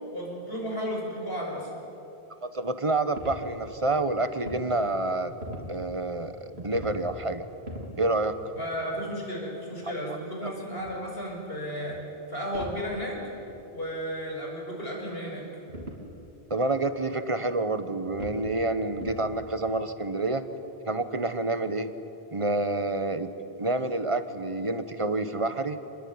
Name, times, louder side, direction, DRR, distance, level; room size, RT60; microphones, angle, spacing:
voice 1, 0.1-1.7 8.5-12.0 12.3-13.2 13.7-15.5, equal, 70° left, -1 dB, 6.4 m, -33 dB
voice 2, 2.4-5.3 5.7-7.4 7.9-8.4 9.8-10.2 16.5-20.4 20.8-21.9 22.3-23.3 23.6-25.8, right 2 dB, 30° right, 10 dB, 1.4 m, -28 dB
sound 1, 3.2-4.6 5.0-5.7 6.4-7.0 7.3-7.9 8.4-8.5 9.7-9.8 10.8-10.9 11.9-12.1 12.5-12.8 13.2-13.3 13.5-13.6 14.1-14.2 14.8-15.2 15.7-16.0 16.7-16.8 17.3-17.4 18.1-18.6 18.9-19.3 19.6-19.7, right 1 dB, 85° right, 3.9 m, -40 dB
27.0 x 21.5 x 9.8 m, 2.9 s
omnidirectional pair, 1.0 m